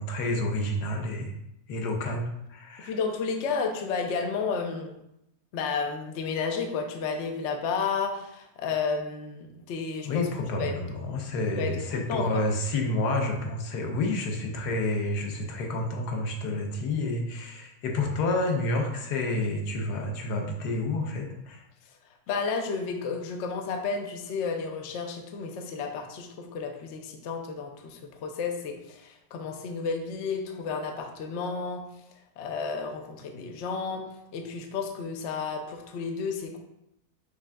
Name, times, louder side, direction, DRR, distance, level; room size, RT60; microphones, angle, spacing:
voice 1, 0.0-1.3 1.7-3.0 10.0-21.6, left 2 dB, 90° left, 1 dB, 1.3 m, -29 dB
voice 2, 2.8-5.0 5.5-10.3 10.6-10.7 11.6-12.4 22.1-31.8 32.4-34.0 34.3-36.6, left 5 dB, 65° left, 4 dB, 0.7 m, -32 dB
5.8 x 3.5 x 2.2 m, 0.82 s
omnidirectional pair, 1.7 m